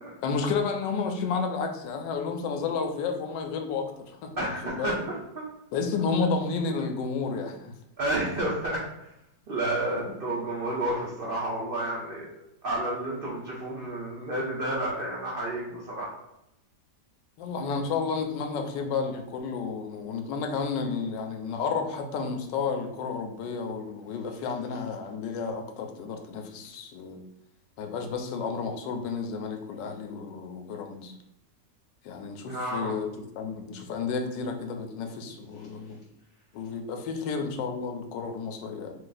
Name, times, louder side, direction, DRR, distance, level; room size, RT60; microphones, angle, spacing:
voice 1, 0.2-4.3 4.6-5.0 5.7-7.7 17.4-27.2 27.8-31.1 32.0-33.1 33.4-36.0 36.5-38.9, left 5 dB, 85° left, 5 dB, 1.2 m, -31 dB
voice 2, 4.4-5.5 8.0-9.1 9.5-12.3 12.6-16.1 32.5-32.9, right 1 dB, 75° right, -4 dB, 0.5 m, -31 dB
3.0 x 2.5 x 3.8 m, 0.85 s
omnidirectional pair, 1.9 m